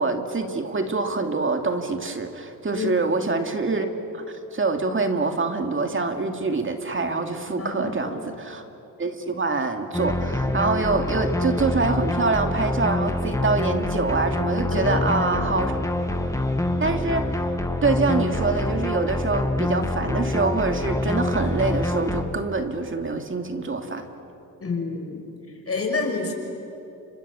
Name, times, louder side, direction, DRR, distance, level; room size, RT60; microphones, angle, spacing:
voice 1, 0.0-3.9 4.1-4.2 4.5-8.6 9.0-15.7 16.8-17.3 17.8-24.1, right 3 dB, 30° right, 5 dB, 2.4 m, -25 dB
voice 2, 2.7-3.1 7.6-8.2 14.7-15.7 24.6-25.2 25.7-26.3, left 3 dB, 40° left, 3 dB, 5.6 m, -29 dB
sound 1, 9.9-22.2, left 1 dB, 10° left, 1.9 m, -26 dB
30.0 x 25.0 x 7.1 m, 2.8 s
cardioid pair, 80°, 38 cm